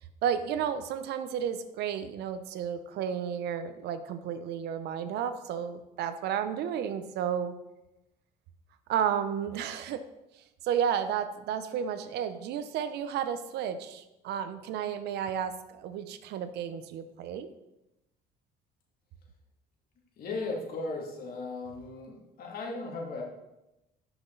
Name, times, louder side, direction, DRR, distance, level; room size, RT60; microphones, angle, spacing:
voice 1, 0.2-7.6 8.9-10.0 10.6-17.5, right 8 dB, 80° right, 11 dB, 0.8 m, -32 dB
voice 2, 20.2-23.2, left 3 dB, 60° left, -1 dB, 2.6 m, -36 dB
12.0 x 6.1 x 4.0 m, 0.94 s
cardioid pair, 110°, 17 cm